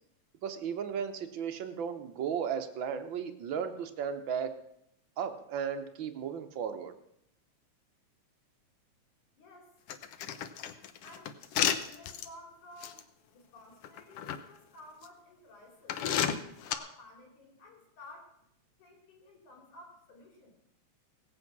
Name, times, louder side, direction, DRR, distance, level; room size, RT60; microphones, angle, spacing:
voice 1, 0.4-4.5 5.2-6.9, right 7 dB, 70° right, 8 dB, 1.1 m, -35 dB
voice 2, 9.3-9.7 11.0-13.0 13.3-18.3 18.8-20.6, left 2 dB, 85° left, -1 dB, 5.4 m, -54 dB
sound 1, 9.9-12.3 12.8-13.0 13.8-14.4 15.0-15.1 15.9-16.7, left 9 dB, 65° left, 1.6 m, -31 dB
18.5 x 8.3 x 6.0 m, 0.75 s
omnidirectional pair, 3.4 m